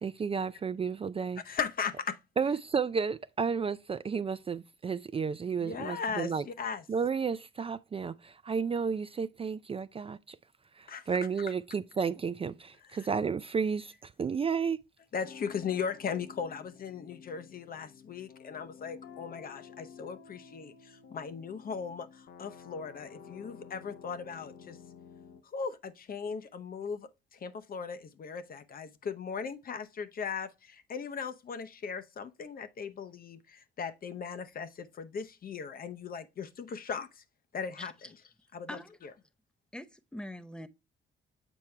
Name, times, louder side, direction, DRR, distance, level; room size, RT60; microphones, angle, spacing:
voice 1, 0.0-1.4 2.4-6.4 6.9-10.4 10.8-14.8, right 6 dB, 30° right, 0.4 m, -32 dB
voice 2, 1.4-2.2 5.6-6.8 10.9-11.2 12.8-13.1 15.1-24.8 25.4-37.2 37.5-38.2 38.5-39.1, left 6 dB, 45° left, 0.8 m, -38 dB
sound 1, 15.2-25.4, left 6 dB, 75° left, 0.9 m, -52 dB
voice 3, 39.7-40.7, left 1 dB, 5° left, 0.7 m, -43 dB
7.2 x 4.5 x 3.2 m
cardioid pair, 90°, 20 cm